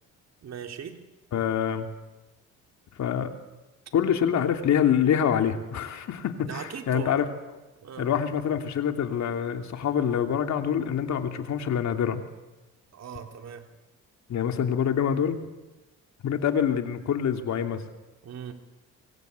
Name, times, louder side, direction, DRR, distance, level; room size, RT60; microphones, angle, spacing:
voice 1, 0.4-1.0 6.5-7.1 7.8-8.1 12.9-13.7 18.2-18.5, right 7 dB, 60° right, 5 dB, 3.5 m, -39 dB
voice 2, 1.3-1.9 3.0-3.3 3.9-7.3 8.0-12.2 14.3-15.4 16.2-17.8, left 8 dB, 65° left, 6 dB, 3.0 m, -25 dB
28.0 x 24.5 x 8.3 m, 1.1 s
cardioid pair, 90°, 30 cm